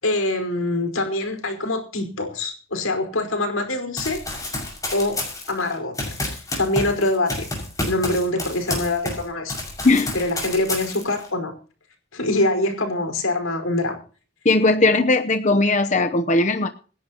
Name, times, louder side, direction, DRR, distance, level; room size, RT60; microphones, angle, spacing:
voice 1, 0.0-4.2 4.9-5.2 5.5-7.5 7.8-9.6 10.1-11.5 12.1-14.0, left 2 dB, 90° left, 5 dB, 5.0 m, -24 dB
Run, 4.0-9.2 9.5-11.3, left 2 dB, 15° left, 6.1 m, -29 dB
voice 2, 14.4-16.7, left 2 dB, 35° left, 7 dB, 0.8 m, -18 dB
26.5 x 11.0 x 3.0 m, 0.39 s
head